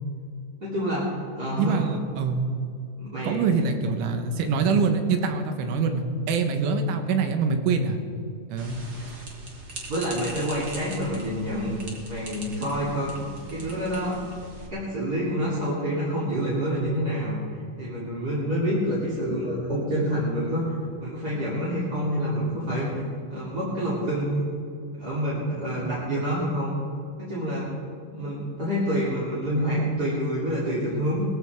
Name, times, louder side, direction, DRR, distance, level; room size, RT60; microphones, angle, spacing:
voice 1, 0.6-1.0 1.3-1.8 3.0-3.5 9.9-11.7 12.1-13.1 13.5-14.2 14.7-20.7 21.0-24.5 24.9-26.8 27.2-27.7 28.1-31.2, equal, 25° right, -9 dB, 2.9 m, -27 dB
voice 2, 1.6-2.5 3.2-8.0 8.5-8.8, right 5 dB, 85° right, 6 dB, 3.7 m, -24 dB
sound 1, 8.6-14.7, right 2 dB, 50° right, 1.1 m, -41 dB
20.5 x 14.5 x 3.6 m, 2.5 s
omnidirectional pair, 5.6 m